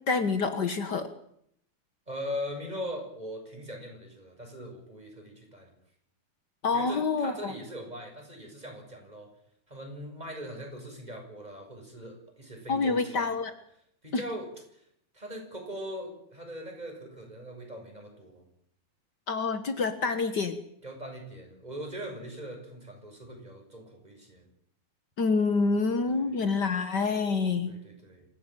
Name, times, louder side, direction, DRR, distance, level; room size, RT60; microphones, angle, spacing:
voice 1, 0.1-1.1 6.6-7.5 12.7-13.5 14.1-14.2 19.3-20.6 25.2-27.7, left 4 dB, 85° left, 9 dB, 0.9 m, -27 dB
voice 2, 2.1-5.7 6.7-9.3 9.7-13.3 14.0-14.8 15.1-18.4 20.8-24.4 26.1-26.3 27.7-28.3, equal, 10° right, 2 dB, 6.9 m, -41 dB
26.5 x 16.5 x 9.3 m, 0.70 s
omnidirectional pair, 4.3 m